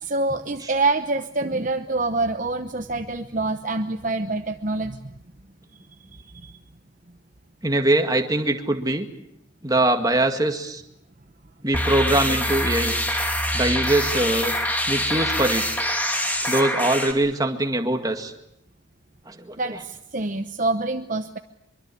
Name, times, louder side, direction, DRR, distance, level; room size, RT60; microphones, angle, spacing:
voice 1, 0.0-5.1 6.2-6.5 19.6-21.4, right 2 dB, 40° right, 7 dB, 0.9 m, -26 dB
voice 2, 7.6-9.1 9.6-10.8 11.6-13.0 13.5-14.5 14.9-15.7 16.5-18.3 19.3-19.6, right 1 dB, 20° right, 5 dB, 1.9 m, -22 dB
sound 1, 11.7-17.1, equal, 10° left, 2.5 m, -25 dB
24.5 x 23.5 x 8.4 m, 0.78 s
head